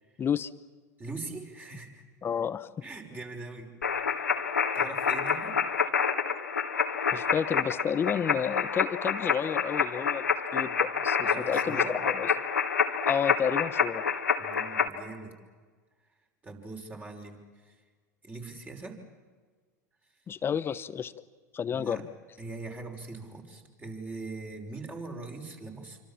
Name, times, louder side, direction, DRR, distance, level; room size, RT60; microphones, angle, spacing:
voice 1, 0.2-0.5 2.2-2.7 7.1-12.3 13.1-14.1 20.3-21.1 21.5-22.1, left 7 dB, 25° left, 14 dB, 1.0 m, -31 dB
voice 2, 1.0-2.0 2.8-3.7 4.7-5.6 11.2-12.0 14.4-15.3 16.4-17.7 18.2-19.0 21.7-22.0 22.4-26.0, right 3 dB, 20° right, 2 dB, 5.6 m, -41 dB
sound 1, 3.8-14.9, left 6 dB, 85° left, 1.9 m, -28 dB
27.5 x 25.5 x 7.4 m, 1.5 s
hypercardioid pair, 90°, 9 cm